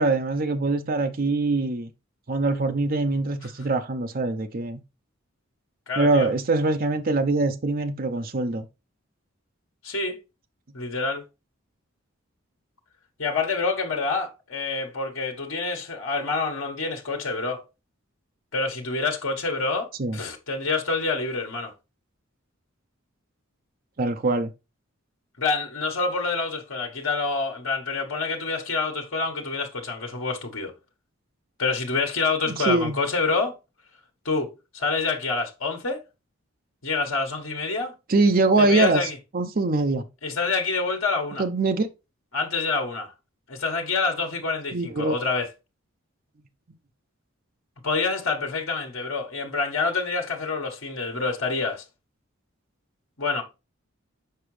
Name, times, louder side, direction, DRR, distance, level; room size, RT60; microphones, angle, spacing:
voice 1, 0.0-1.9 2.3-4.8 6.0-8.7 20.0-20.2 24.0-24.5 32.5-33.0 38.1-40.0 41.4-41.9 44.7-45.2, right 3 dB, 45° right, 0.6 m, -23 dB
voice 2, 5.9-6.3 9.8-10.2 10.7-11.2 13.2-17.6 18.5-21.7 25.4-30.7 31.6-33.5 34.2-36.0 36.8-37.9 38.6-39.2 40.2-41.4 42.3-43.1 43.5-45.5 47.8-51.8 53.2-53.4, left 4 dB, 80° left, 1.4 m, -27 dB
6.6 x 4.9 x 3.2 m
head